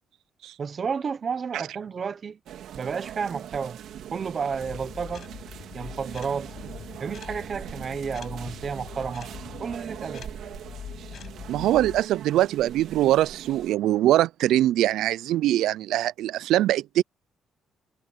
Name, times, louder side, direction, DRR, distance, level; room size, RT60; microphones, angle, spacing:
voice 1, 0.6-2.4 2.7-3.8 4.1-5.3 5.7-6.5 7.0-9.3 9.6-10.3, right 6 dB, 35° right, 0.8 m, -31 dB
sound 1, 2.5-13.8, right 10 dB, 70° right, 3.5 m, -41 dB
sound 2, 4.6-12.0, left 8 dB, 50° left, 7.6 m, -43 dB
voice 2, 11.5-17.0, right 14 dB, 90° right, 0.4 m, -22 dB
cardioid pair, 150°, 0 cm